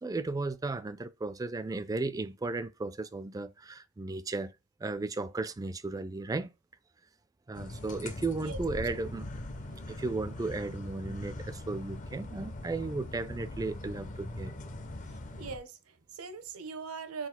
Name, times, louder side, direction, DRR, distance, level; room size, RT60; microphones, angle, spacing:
voice 1, 0.0-4.5 4.8-6.5 7.5-9.3 9.8-14.7, right 3 dB, 15° right, 0.3 m, -35 dB
sound 1, 7.5-15.6, left 1 dB, 35° left, 0.5 m, -41 dB
voice 2, 15.4-17.3, right 5 dB, 80° right, 0.7 m, -41 dB
4.0 x 2.4 x 4.2 m
head